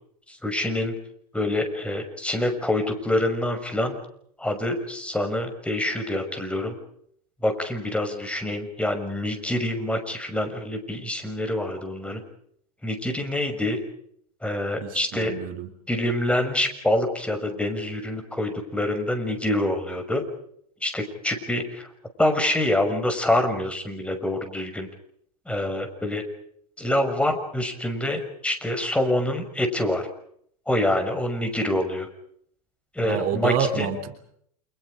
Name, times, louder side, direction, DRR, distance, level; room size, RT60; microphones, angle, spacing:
voice 1, 0.3-1.0 1.3-4.0 4.4-6.8 7.4-12.2 12.8-13.8 14.4-15.3 15.9-20.2 20.8-21.9 22.2-24.9 25.5-26.2 26.8-30.1 30.7-32.1 32.9-33.9, left 1 dB, 5° left, 6 dB, 6.2 m, -26 dB
voice 2, 14.8-15.7 33.0-34.2, right 8 dB, 45° right, 8 dB, 3.3 m, -28 dB
29.5 x 28.5 x 5.1 m, 0.68 s
hypercardioid pair, 105°, 20 cm